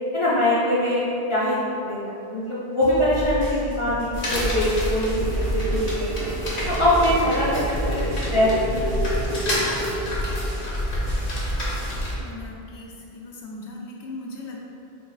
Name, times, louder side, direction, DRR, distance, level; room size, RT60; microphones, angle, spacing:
voice 1, 0.1-1.0 1.3-6.3 6.7-8.8, left 1 dB, 35° left, -9 dB, 0.5 m, -23 dB
sound 1, 2.8-7.2 7.5-12.2, right 1 dB, 90° right, 1.1 m, -34 dB
sound 2, 4.1-12.1, left 1 dB, 55° left, 0.9 m, -28 dB
sound 3, 5.1-10.9, right 2 dB, 50° right, 0.3 m, -31 dB
voice 2, 12.2-14.6, left 2 dB, 85° left, -2 dB, 0.9 m, -38 dB
4.4 x 2.4 x 3.1 m, 2.7 s
omnidirectional pair, 1.1 m